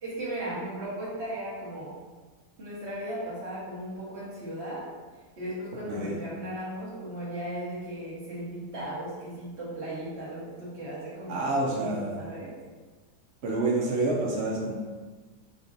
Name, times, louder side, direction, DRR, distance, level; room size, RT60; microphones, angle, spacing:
voice 1, 0.0-1.9 2.6-4.9 5.4-11.5 11.8-12.5, right 1 dB, 45° right, -8 dB, 1.3 m, -36 dB
voice 2, 5.9-6.2 11.3-12.3 13.4-14.7, right 2 dB, 70° right, -3 dB, 0.6 m, -28 dB
5.1 x 2.4 x 2.6 m, 1.4 s
omnidirectional pair, 1.8 m